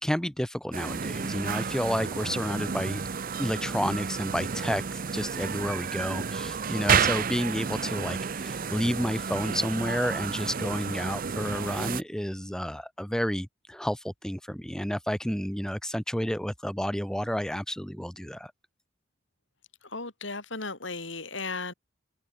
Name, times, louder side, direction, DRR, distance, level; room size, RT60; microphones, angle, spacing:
voice 1, 0.0-3.0 3.4-18.5, equal, 5° left, 1.0 m, -30 dB
sound 1, 0.7-12.0, right 6 dB, 50° right, 0.7 m, -31 dB
voice 2, 19.8-21.7, left 3 dB, 85° left, 6.0 m, -35 dB
open air
head